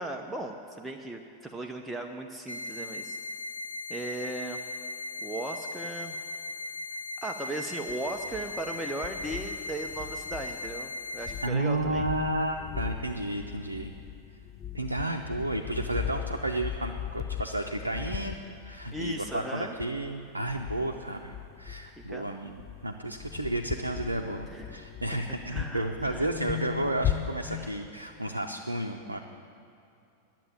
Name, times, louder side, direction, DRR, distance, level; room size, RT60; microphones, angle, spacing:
voice 1, 0.0-3.2 3.9-4.6 5.2-6.2 7.2-12.1 18.9-19.8 22.0-22.3 24.5-24.7 25.5-26.3 27.5-27.7, right 2 dB, 5° right, 2 dB, 0.7 m, -37 dB
sound 1, 2.5-11.5, left 2 dB, 80° left, 0.7 m, -38 dB
sound 2, 7.9-8.7 9.0-10.9 11.2-22.2 22.5-27.7, left 10 dB, 30° left, 0.5 m, -38 dB
voice 2, 11.4-13.9 14.7-18.4 18.6-22.5 22.8-29.2, right 1 dB, 80° right, 2 dB, 0.6 m, -32 dB
11.0 x 7.4 x 8.9 m, 2.6 s
figure-of-eight pair, 90°, 0 cm